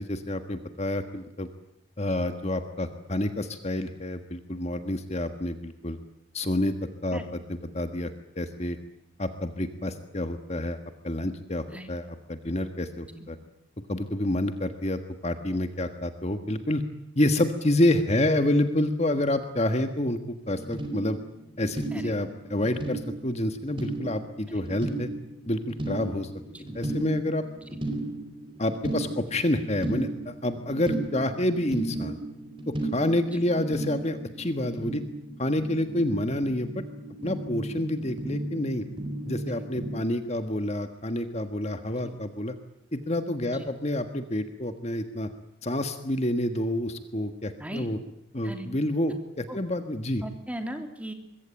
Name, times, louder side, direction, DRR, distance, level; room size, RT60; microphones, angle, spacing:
voice 1, 0.0-1.5 2.0-6.0 6.3-6.7 7.0-8.1 8.3-8.8 9.2-10.8 11.0-13.4 13.9-16.8 17.1-20.2 20.5-21.2 21.6-25.1 25.5-26.3 26.7-27.5 28.6-32.2 32.7-35.0 35.4-36.8 37.2-38.8 39.2-42.5 42.9-45.3 45.6-48.0 48.3-50.2, left 1 dB, 35° left, 8 dB, 1.5 m, -28 dB
sound 1, 20.4-40.0, right 1 dB, 25° right, 4.6 m, -35 dB
voice 2, 26.5-26.8 27.7-27.8 33.3-33.4 39.5-39.7 42.0-42.2 43.5-43.7 47.6-47.9 48.4-48.7 49.5-49.6 50.2-51.1, right 1 dB, 5° right, 5 dB, 3.0 m, -38 dB
24.5 x 22.0 x 9.0 m, 0.80 s
head